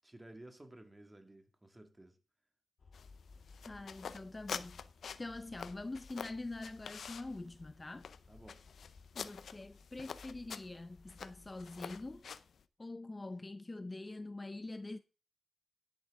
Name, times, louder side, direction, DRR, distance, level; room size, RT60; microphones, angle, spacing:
voice 1, 0.0-2.2 8.3-8.6, right 1 dB, 20° right, 2.1 m, -55 dB
sound 1, 2.8-12.2, left 4 dB, 60° left, 1.7 m, -59 dB
sound 2, 2.9-12.6, left 6 dB, 80° left, 0.6 m, -48 dB
voice 2, 3.7-4.8 5.2-8.1 9.1-12.3 12.8-15.0, left 2 dB, 25° left, 0.6 m, -44 dB
10.5 x 10.5 x 3.7 m
cardioid pair, 80°, 0 cm